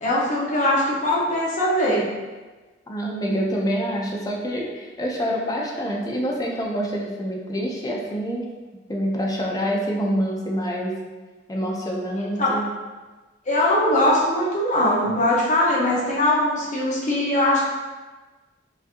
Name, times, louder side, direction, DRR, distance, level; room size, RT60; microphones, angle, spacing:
voice 1, 0.0-2.1 12.4-12.5 13.5-17.6, left 1 dB, 40° left, -6 dB, 1.0 m, -21 dB
voice 2, 2.9-8.4 8.9-11.0 11.5-12.7, equal, 20° left, -2 dB, 0.5 m, -26 dB
4.7 x 2.7 x 2.7 m, 1.3 s
head